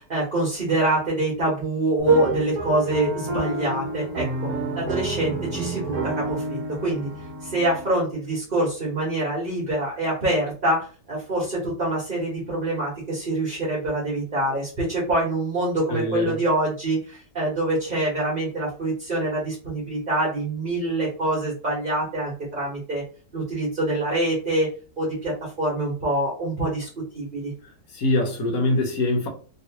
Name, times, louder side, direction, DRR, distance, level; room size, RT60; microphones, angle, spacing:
voice 1, 0.1-4.3 4.7-7.1 7.4-23.0 23.3-24.7 25.0-26.9 27.1-27.5, right 1 dB, 35° right, 1.3 m, -25 dB
sound 1, 2.0-7.9, right 3 dB, 70° right, 1.2 m, -28 dB
voice 2, 15.9-16.4 27.9-29.3, left 2 dB, 65° left, 1.3 m, -23 dB
3.0 x 3.0 x 2.9 m
omnidirectional pair, 1.7 m